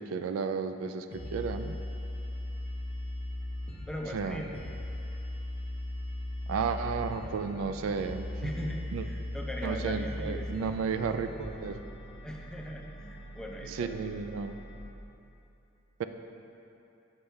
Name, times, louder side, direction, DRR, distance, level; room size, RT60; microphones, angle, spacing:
voice 1, 0.0-1.8 4.1-4.5 6.5-8.5 8.9-9.0 9.6-11.8 13.7-14.6 16.0-16.1, right 5 dB, 80° right, 9 dB, 0.3 m, -33 dB
sound 1, 1.1-14.8, left 1 dB, 25° left, 0.7 m, -39 dB
voice 2, 3.9-4.5 7.2-7.3 8.4-10.7 12.2-14.2, equal, 5° left, 0 dB, 0.4 m, -40 dB
7.9 x 5.5 x 3.4 m, 2.8 s
head